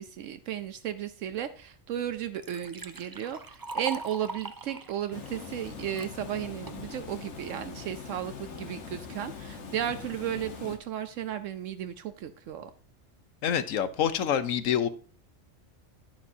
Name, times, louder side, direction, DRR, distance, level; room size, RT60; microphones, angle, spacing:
voice 1, 0.0-12.7, right 10 dB, 75° right, 1.0 m, -34 dB
Liquid, 1.6-1.7 2.1-6.1 6.7-7.1, right 4 dB, 35° right, 0.3 m, -41 dB
Water, 5.1-10.8, left 5 dB, 60° left, 1.5 m, -42 dB
voice 2, 13.4-14.9, left 9 dB, 80° left, 1.2 m, -26 dB
10.5 x 9.9 x 2.7 m
omnidirectional pair, 1.3 m